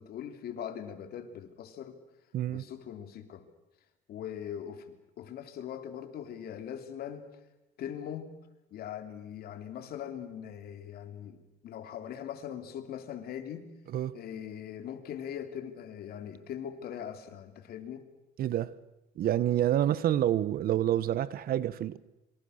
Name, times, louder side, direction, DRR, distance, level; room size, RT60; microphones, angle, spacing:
voice 1, 0.0-2.0 2.5-3.4 4.1-7.3 7.8-8.3 8.7-13.7 14.1-18.1, left 9 dB, 65° left, 3.1 m, -41 dB
voice 2, 2.3-2.6 13.9-14.2 18.4-18.7 19.2-22.0, right 12 dB, 60° right, 1.1 m, -28 dB
27.0 x 24.5 x 6.5 m
cardioid pair, 110°, 17 cm